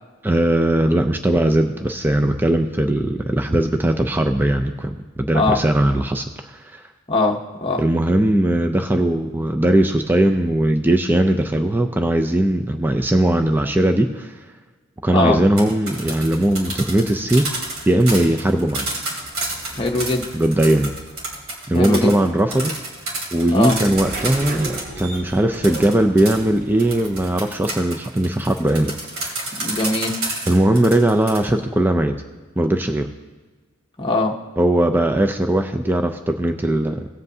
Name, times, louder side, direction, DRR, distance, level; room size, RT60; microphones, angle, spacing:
voice 1, 0.2-6.8 7.8-14.4 15.0-17.5 17.9-18.9 20.3-20.9 21.7-22.7 23.3-28.9 29.4-29.5 30.5-32.2 32.6-33.1 34.6-37.1, right 1 dB, 10° right, 5 dB, 0.4 m, -19 dB
voice 2, 7.1-7.8 15.1-15.4 19.8-20.3 21.7-22.2 23.5-23.8 29.6-30.1 34.0-34.3, left 2 dB, 25° left, 0 dB, 0.8 m, -21 dB
sound 1, 15.4-25.0 25.6-31.4, right 2 dB, 85° right, 2.8 m, -29 dB
sound 2, 16.0-27.7, right 2 dB, 40° right, 0.9 m, -39 dB
18.0 x 7.8 x 2.7 m, 1.3 s
head